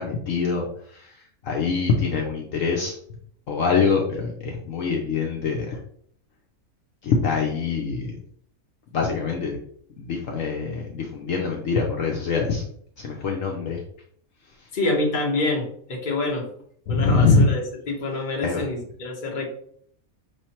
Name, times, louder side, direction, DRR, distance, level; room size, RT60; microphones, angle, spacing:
voice 1, 0.0-2.9 3.5-5.8 7.0-8.2 8.9-9.6 10.0-12.6 13.0-13.8 14.6-14.7 16.9-17.4 18.4-18.6, left 4 dB, 65° left, -1 dB, 1.0 m, -24 dB
voice 2, 14.7-16.4 16.9-19.5, left 2 dB, 35° left, 0 dB, 1.1 m, -26 dB
5.3 x 3.2 x 2.9 m, 0.63 s
omnidirectional pair, 1.6 m